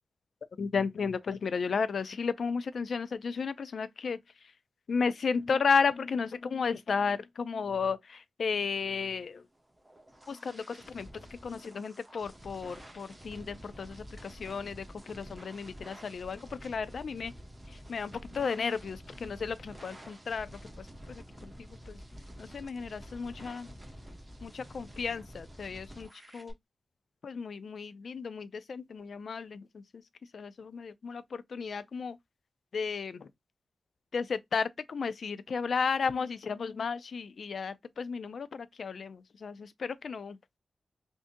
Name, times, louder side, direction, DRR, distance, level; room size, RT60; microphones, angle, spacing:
voice 1, 0.6-4.2 4.9-9.4 10.3-11.1 11.4-17.3 17.9-20.5 21.1-21.5 21.9-22.0 22.4-23.7 24.4-26.1 26.3-26.5 27.2-29.6 30.3-32.2 32.7-33.3 34.1-40.4, left 5 dB, 65° left, 0.3 m, -33 dB
sound 1, 9.5-26.5, equal, 15° right, 0.8 m, -49 dB
3.5 x 2.6 x 2.5 m
wide cardioid pair, 105°, 0 cm